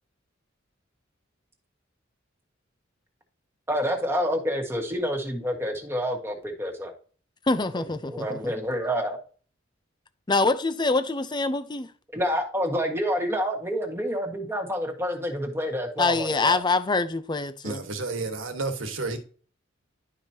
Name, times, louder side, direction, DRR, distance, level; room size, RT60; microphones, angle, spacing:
voice 1, 3.7-6.9 7.7-9.2 12.1-16.6, equal, 15° right, 1.6 m, -28 dB
voice 2, 7.5-8.5 10.3-11.9 16.0-17.8, left 3 dB, 25° left, 0.6 m, -25 dB
voice 3, 17.6-19.2, right 3 dB, 85° right, 1.5 m, -31 dB
11.5 x 5.0 x 2.8 m
head